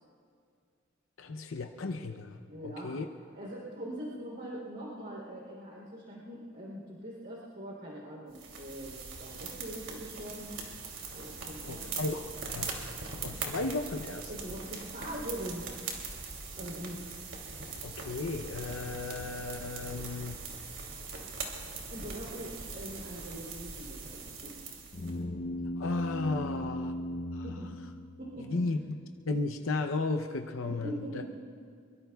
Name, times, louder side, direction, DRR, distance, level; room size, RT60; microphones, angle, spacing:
voice 1, 1.2-2.4 2.6-3.1 11.6-12.9 13.2-14.3 17.8-20.4 25.8-26.9 27.3-27.4 28.4-28.8 29.3-31.2, left 3 dB, 90° left, 5 dB, 0.7 m, -34 dB
voice 2, 2.5-3.0 3.3-10.5 11.1-12.0 14.3-15.7 16.6-17.0 21.9-24.6 27.4-27.7 28.2-28.6 30.6-31.4, right 1 dB, 55° right, -5 dB, 3.3 m, -42 dB
sound 1, 8.3-25.1, right 4 dB, 85° right, 2.7 m, -41 dB
sound 2, 24.9-28.6, left 1 dB, 40° left, 0.5 m, -37 dB
23.5 x 23.0 x 2.3 m, 2.2 s
head